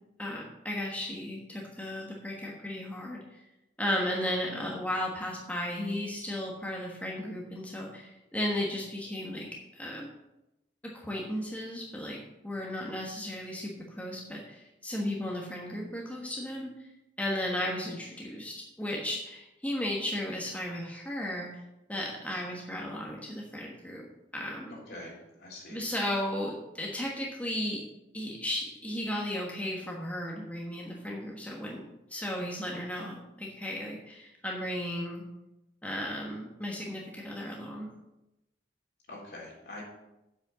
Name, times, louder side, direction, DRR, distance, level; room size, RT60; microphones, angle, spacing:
voice 1, 0.2-3.4 3.8-10.1 10.9-16.9 17.2-21.5 21.9-24.1 24.3-24.7 25.7-27.8 28.1-31.8 32.1-35.2 35.8-37.9, left 1 dB, 10° left, -2 dB, 1.3 m, -35 dB
voice 2, 24.7-25.8 39.1-39.8, left 1 dB, 60° left, -3 dB, 3.7 m, -45 dB
7.8 x 6.2 x 6.8 m, 0.93 s
head